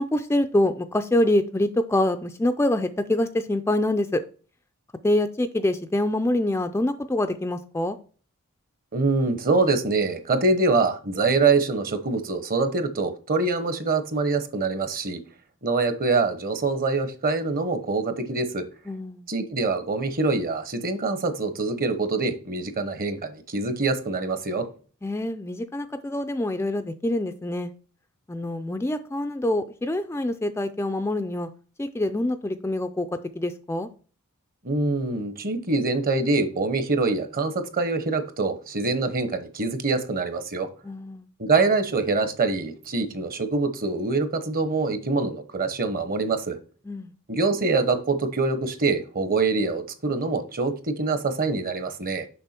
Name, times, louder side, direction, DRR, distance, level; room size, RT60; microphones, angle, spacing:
voice 1, 0.0-4.2 5.0-8.0 18.9-19.3 25.0-27.7 28.3-31.5 31.8-33.1 33.4-33.9 40.8-41.3 46.9-47.1, left 1 dB, 10° left, 0.4 m, -25 dB
voice 2, 8.9-15.2 15.6-18.6 19.3-24.7 34.6-40.7 41.4-46.6 47.3-52.3, right 3 dB, 45° right, 1.0 m, -24 dB
6.8 x 5.4 x 4.3 m
head